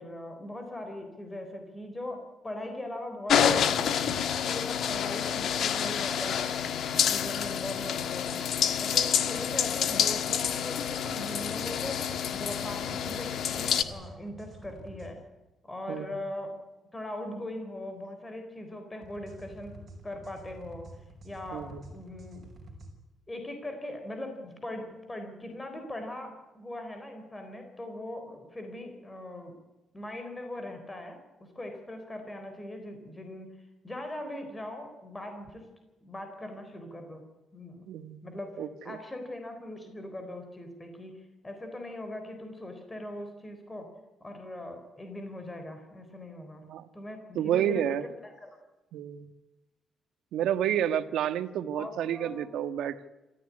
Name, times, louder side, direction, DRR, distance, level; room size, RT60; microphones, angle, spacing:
voice 1, 0.0-4.1 4.4-8.4 8.8-12.0 12.3-15.2 15.6-16.6 16.9-19.8 20.0-20.9 21.2-22.4 23.3-29.5 29.9-33.5 33.8-35.7 36.0-37.2 37.5-37.8 38.2-43.9 44.2-46.6 46.9-48.6 51.7-52.5, left 1 dB, 15° left, 6 dB, 4.1 m, -40 dB
sound 1, 3.3-13.8, left 8 dB, 60° left, 1.6 m, -28 dB
sound 2, 11.2-15.1 19.0-22.9, right 1 dB, 30° right, 5.9 m, -49 dB
voice 2, 21.5-21.8 37.9-39.0 46.6-46.9 47.3-48.1 48.9-49.3 50.3-53.1, right 10 dB, 85° right, 11 dB, 1.5 m, -30 dB
27.0 x 14.5 x 9.7 m, 1.1 s
cardioid pair, 155°, 0 cm